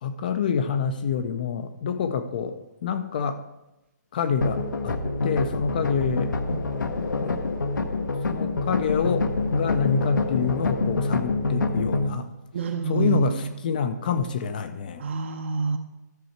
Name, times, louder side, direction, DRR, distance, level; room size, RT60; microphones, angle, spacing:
voice 1, 0.0-3.4 4.1-5.0 5.2-6.3 7.2-7.4 8.3-12.3 12.9-15.1, left 6 dB, 30° left, 9 dB, 0.4 m, -27 dB
sound 1, 4.4-12.1, left 3 dB, 90° left, 1.0 m, -26 dB
voice 2, 12.5-13.5 15.0-15.8, right 5 dB, 40° right, 6 dB, 0.6 m, -27 dB
12.5 x 5.6 x 4.4 m, 0.96 s
hypercardioid pair, 165°, 10 cm